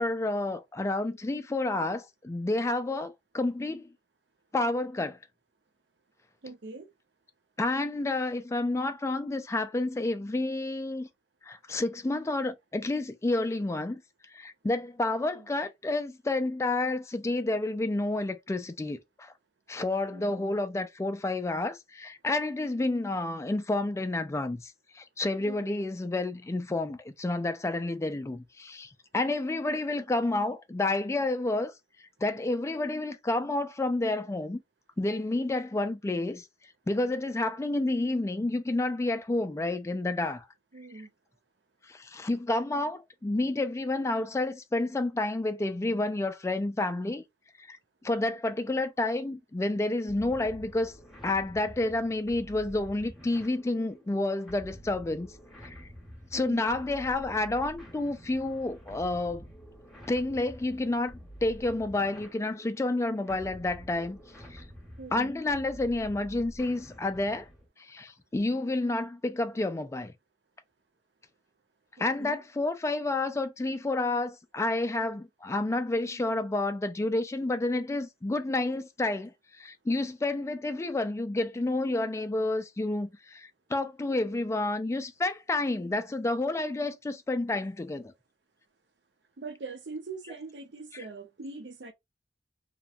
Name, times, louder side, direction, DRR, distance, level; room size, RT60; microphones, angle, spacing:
voice 1, 0.0-3.9 4.5-5.2 7.6-11.1 11.4-14.0 14.3-19.3 19.7-31.7 32.2-34.6 35.0-36.5 36.9-40.5 41.9-47.2 47.6-47.8 48.0-50.9 51.2-55.3 55.6-55.9 56.3-59.4 60.1-64.2 64.5-64.6 65.1-67.5 67.8-70.1 72.0-88.1, left 2 dB, 15° left, 0.3 m, -30 dB
voice 2, 6.4-6.9 15.2-15.5 20.1-20.5 25.4-25.7 40.7-41.1 56.3-56.6 65.0-65.3 72.0-72.4 89.4-91.9, right 3 dB, 70° right, 0.6 m, -42 dB
sound 1, 50.1-67.7, equal, ahead, 1.0 m, -48 dB
2.9 x 2.2 x 2.4 m
head